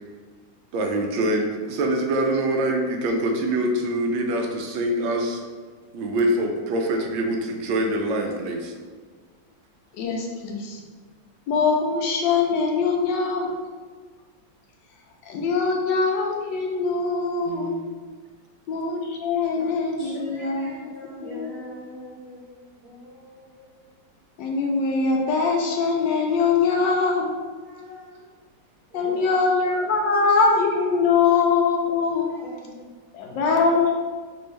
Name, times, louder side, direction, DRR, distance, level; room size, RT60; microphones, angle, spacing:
voice 1, 0.7-5.4 5.9-8.8 17.4-17.9, right 1 dB, 80° right, 2 dB, 1.3 m, -24 dB
voice 2, 10.0-10.8 11.5-13.5 15.3-17.7 18.7-20.7 21.2-21.5 24.4-27.3 28.9-32.2 33.1-33.9, left 4 dB, 75° left, 1 dB, 1.2 m, -22 dB
voice 3, 19.5-24.0 27.6-28.2 28.9-29.6 30.1-30.5 31.2-31.4 32.2-32.9, equal, 35° right, -8 dB, 1.4 m, -42 dB
6.1 x 2.6 x 3.2 m, 1.5 s
omnidirectional pair, 2.1 m